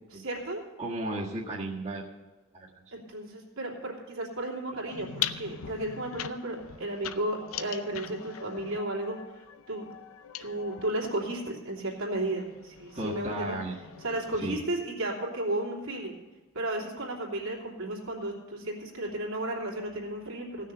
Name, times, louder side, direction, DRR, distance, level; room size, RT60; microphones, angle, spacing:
voice 1, 0.1-0.6 2.9-9.9 10.4-13.6 14.0-16.2 16.5-20.7, right 1 dB, 80° right, -3 dB, 2.9 m, -34 dB
voice 2, 0.8-2.0 2.5-2.7 13.0-13.8 14.4-14.6, right 2 dB, 30° right, -5 dB, 1.7 m, -34 dB
sound 1, 4.9-11.0 11.8-14.5, left 10 dB, 75° left, 0.6 m, -41 dB
16.5 x 6.5 x 6.8 m, 1.2 s
head